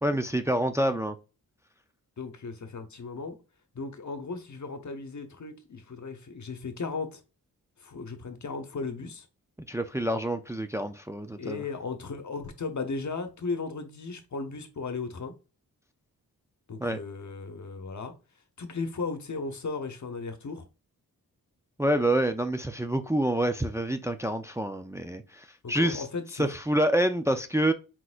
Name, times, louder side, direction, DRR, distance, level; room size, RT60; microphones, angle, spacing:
voice 1, 0.0-1.2 9.7-11.6 16.8-17.0 21.8-26.0 26.4-27.7, right 1 dB, 10° right, 0.6 m, -27 dB
voice 2, 2.2-3.4 3.7-7.2 7.8-9.3 11.4-15.3 16.7-18.1 18.6-20.6 25.6-26.5, left 4 dB, 50° left, 1.0 m, -36 dB
4.4 x 4.0 x 2.5 m
cardioid pair, 50°, 37 cm